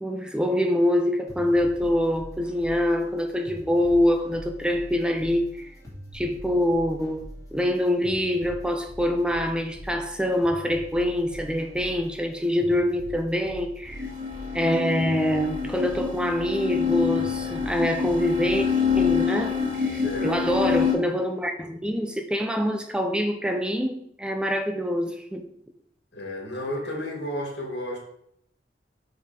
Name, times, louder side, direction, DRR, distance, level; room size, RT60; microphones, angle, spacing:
voice 1, 0.0-5.7 6.1-7.2 7.5-14.1 14.5-18.7 19.0-25.5, left 1 dB, 5° right, 5 dB, 0.5 m, -25 dB
sound 1, 1.3-19.6, equal, 20° left, 2.6 m, -43 dB
sound 2, 13.9-20.9, left 7 dB, 45° right, 2.5 m, -27 dB
voice 2, 19.9-20.4 26.1-28.0, left 1 dB, 70° left, 0 dB, 2.2 m, -32 dB
5.9 x 5.2 x 5.1 m, 0.72 s
head